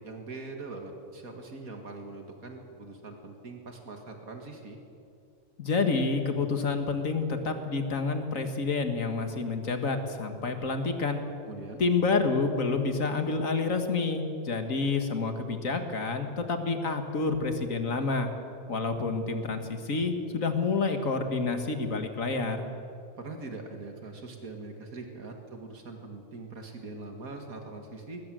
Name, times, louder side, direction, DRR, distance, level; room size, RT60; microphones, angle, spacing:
voice 1, 0.0-4.8 11.5-11.8 23.2-28.2, right 3 dB, 80° right, 3 dB, 2.4 m, -42 dB
voice 2, 5.6-11.2 11.8-18.3 18.7-22.7, left 4 dB, 65° left, 6 dB, 2.2 m, -28 dB
22.0 x 19.5 x 7.8 m, 2.6 s
omnidirectional pair, 1.5 m